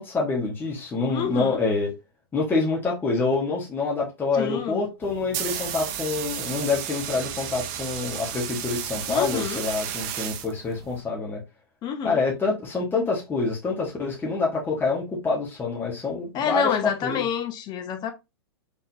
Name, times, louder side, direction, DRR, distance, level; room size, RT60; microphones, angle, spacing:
voice 1, 0.0-1.9 2.3-11.4 12.0-16.7 17.0-17.3, left 4 dB, 15° left, 1.4 m, -26 dB
voice 2, 1.1-1.6 4.3-4.8 9.1-9.6 11.8-12.2 16.3-18.1, left 7 dB, 30° left, 0.8 m, -28 dB
sound 1, 5.0-11.0, right 10 dB, 45° right, 0.7 m, -33 dB
4.0 x 3.6 x 2.7 m
hypercardioid pair, 105°, 14 cm